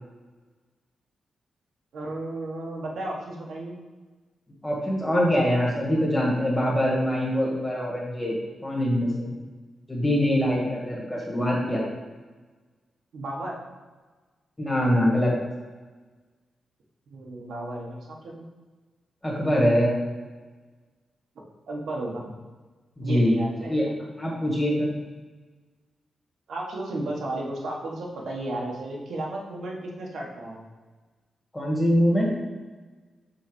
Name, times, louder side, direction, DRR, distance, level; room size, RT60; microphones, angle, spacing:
voice 1, 1.9-3.8 13.1-13.6 17.1-18.5 21.7-22.3 23.0-23.7 26.5-30.6, right 1 dB, 75° right, -2 dB, 1.5 m, -33 dB
voice 2, 4.6-8.4 8.6-9.3 9.9-11.9 14.6-15.3 19.2-19.9 23.0-23.4 23.7-23.9 24.2-24.9 31.5-32.3, equal, 10° left, -3 dB, 1.8 m, -23 dB
5.7 x 4.1 x 6.2 m, 1.3 s
wide cardioid pair, 130°, 0 cm